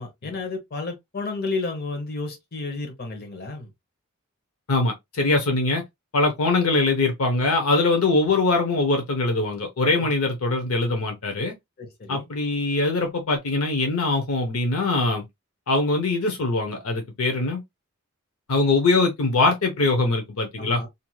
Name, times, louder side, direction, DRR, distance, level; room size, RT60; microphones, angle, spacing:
voice 1, 0.0-3.7 9.9-10.1 11.8-12.3 20.6-20.9, left 3 dB, 45° left, 0.9 m, -32 dB
voice 2, 4.7-5.8 6.1-11.5 12.1-15.2 15.7-17.6 18.5-20.9, left 3 dB, 70° left, 0.7 m, -22 dB
3.0 x 2.6 x 2.3 m
head